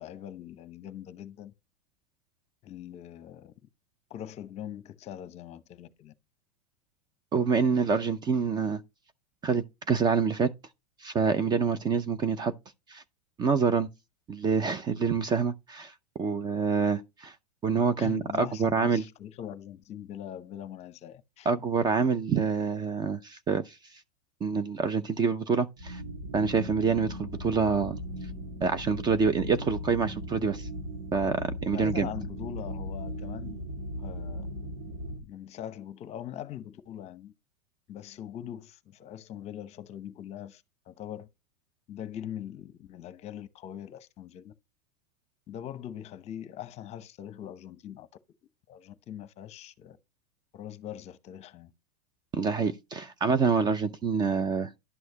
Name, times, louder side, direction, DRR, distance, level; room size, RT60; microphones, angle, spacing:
voice 1, 0.0-1.5 2.6-3.5 4.1-6.1 18.0-21.5 31.7-33.6 34.0-34.5 35.2-37.3 37.9-41.3 41.9-44.5 45.5-48.1 48.7-50.0 50.5-51.7, left 10 dB, 30° left, 0.9 m, -42 dB
voice 2, 7.3-8.8 9.4-10.5 11.0-12.5 12.9-13.0 13.4-13.9 14.3-15.9 16.2-17.3 17.6-19.0 21.5-23.7 24.4-26.0 26.3-28.0 28.6-30.7 31.1-32.1 52.3-54.7, right 5 dB, 20° right, 0.6 m, -26 dB
sound 1, 25.8-35.2, equal, 70° right, 2.8 m, -38 dB
11.0 x 6.3 x 2.9 m
hypercardioid pair, 125°, 20 cm